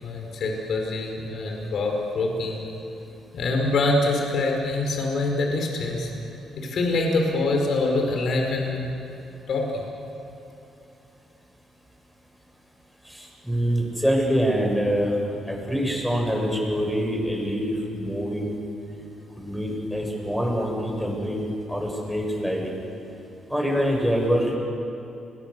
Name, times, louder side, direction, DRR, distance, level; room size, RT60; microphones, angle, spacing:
voice 1, 0.0-2.7 3.3-6.1 6.6-8.9 9.5-9.9, left 2 dB, 60° left, 1 dB, 5.0 m, -25 dB
voice 2, 13.1-15.1 15.5-18.6 19.4-22.8 23.5-24.6, equal, ahead, -1 dB, 7.5 m, -25 dB
29.5 x 22.0 x 6.9 m, 2.8 s
cardioid pair, 90°, 0 cm